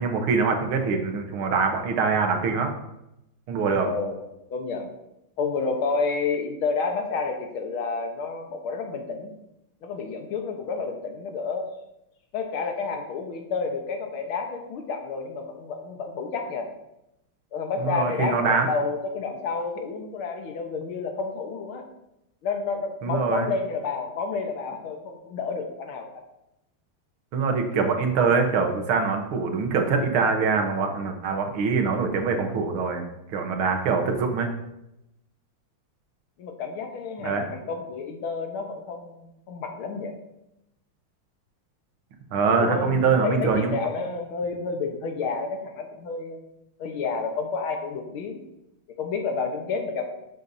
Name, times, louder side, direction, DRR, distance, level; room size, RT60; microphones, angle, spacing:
voice 1, 0.0-2.7 3.5-3.9 17.8-18.7 23.0-23.5 27.3-33.0 33.3-34.5 37.2-37.4 42.3-43.7, right 5 dB, 80° right, 4 dB, 2.0 m, -24 dB
voice 2, 3.8-4.2 4.5-4.9 5.4-9.3 9.8-11.7 12.3-16.7 17.5-21.8 22.4-26.2 36.4-40.1 42.5-46.4 46.8-48.4 48.9-50.1, left 4 dB, 75° left, 4 dB, 1.9 m, -30 dB
11.5 x 7.3 x 2.7 m, 0.87 s
omnidirectional pair, 2.3 m